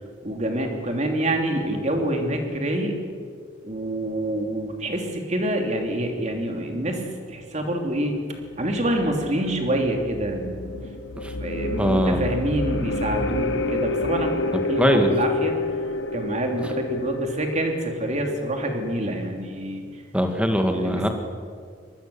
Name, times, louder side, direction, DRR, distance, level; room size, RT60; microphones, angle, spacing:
voice 1, 0.2-3.0 3.6-8.1 8.6-10.6 11.4-15.5 16.1-19.9 20.7-21.1, right 1 dB, 40° right, 3 dB, 3.0 m, -26 dB
sound 1, 8.7-19.0, left 3 dB, 75° left, 1.3 m, -29 dB
voice 2, 11.8-12.2 14.8-15.1 20.1-21.1, equal, 5° right, 5 dB, 1.9 m, -21 dB
24.5 x 20.0 x 7.1 m, 2.1 s
head